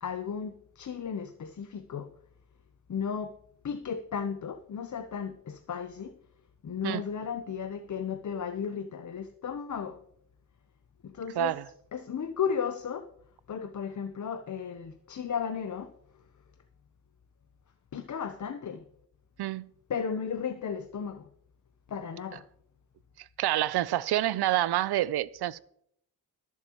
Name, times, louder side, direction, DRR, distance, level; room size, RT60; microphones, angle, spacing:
voice 1, 0.0-2.1 2.9-3.3 3.6-6.1 6.6-10.0 11.0-11.5 11.9-13.1 13.5-15.9 17.9-18.8 19.9-21.3 21.9-22.4, left 7 dB, 50° left, 0.8 m, -34 dB
voice 2, 11.4-11.7 19.4-19.7 23.2-25.6, right 14 dB, 85° right, 0.5 m, -28 dB
21.0 x 7.4 x 3.0 m
cardioid pair, 80°, 38 cm